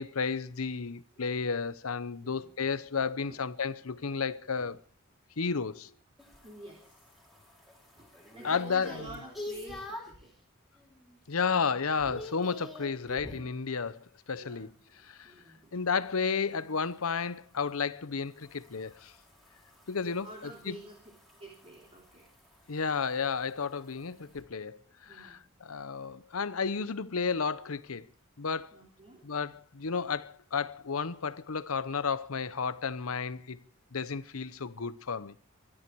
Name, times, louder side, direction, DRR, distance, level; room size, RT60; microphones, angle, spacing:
voice 1, 0.0-4.8 5.4-5.9 8.4-9.0 11.3-14.7 15.0-15.3 15.7-19.1 19.9-20.3 20.7-20.8 22.7-28.0 28.4-28.7 29.2-33.6 33.9-35.3, left 5 dB, 85° left, 0.9 m, -32 dB
voice 2, 2.2-2.8 3.3-3.4 4.6-4.7 6.4-7.1 8.0-10.4 14.4-14.7 15.2-15.8 20.0-21.0 21.3-22.3 25.0-25.5 28.7-29.3, right 1 dB, 30° right, 3.4 m, -49 dB
sound 1, 6.2-10.3 10.8-11.2 11.4-13.5 16.0-24.4, left 1 dB, ahead, 4.7 m, -48 dB
24.5 x 11.5 x 4.7 m
head